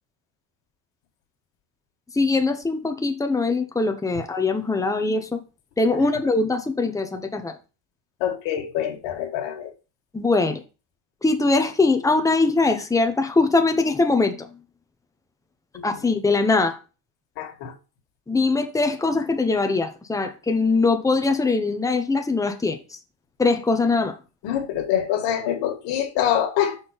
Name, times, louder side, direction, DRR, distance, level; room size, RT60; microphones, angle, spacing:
voice 1, 2.1-5.4 5.8-7.6 10.1-10.6 11.2-14.5 15.8-16.8 18.3-22.8 23.4-24.2, left 3 dB, 10° left, 0.9 m, -22 dB
voice 2, 8.2-9.7 15.7-15.9 17.4-17.7 24.4-26.8, left 10 dB, 80° left, 2.0 m, -25 dB
6.1 x 4.4 x 5.2 m
cardioid pair, 110°, 43 cm